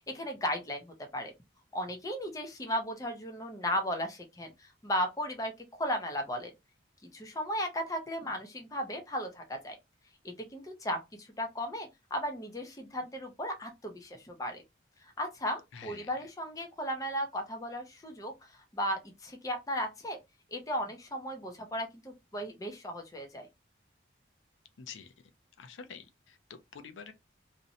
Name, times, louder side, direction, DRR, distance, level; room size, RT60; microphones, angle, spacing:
voice 1, 0.1-1.3 1.7-6.5 7.1-9.8 10.5-14.6 15.2-20.2 20.5-23.5, equal, 20° left, 0.5 m, -35 dB
voice 2, 15.7-16.1 24.8-25.1 25.6-27.1, left 6 dB, 85° left, 0.4 m, -47 dB
2.6 x 2.1 x 2.7 m
head